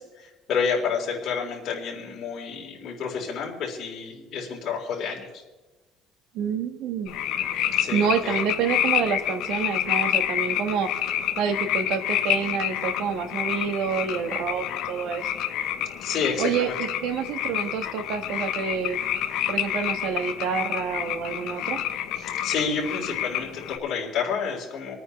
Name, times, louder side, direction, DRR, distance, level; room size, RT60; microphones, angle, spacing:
voice 1, 0.0-5.3 7.8-8.3 16.0-16.8 22.2-24.9, left 6 dB, 50° left, -3 dB, 4.1 m, -29 dB
voice 2, 6.3-7.2 7.9-10.9 11.4-15.2 16.4-19.0 19.5-21.8, right 6 dB, 70° right, 7 dB, 1.5 m, -28 dB
sound 1, 7.1-23.8, left 11 dB, 70° left, 1.0 m, -28 dB
28.0 x 9.5 x 3.3 m, 1.1 s
cardioid pair, 145°, 0 cm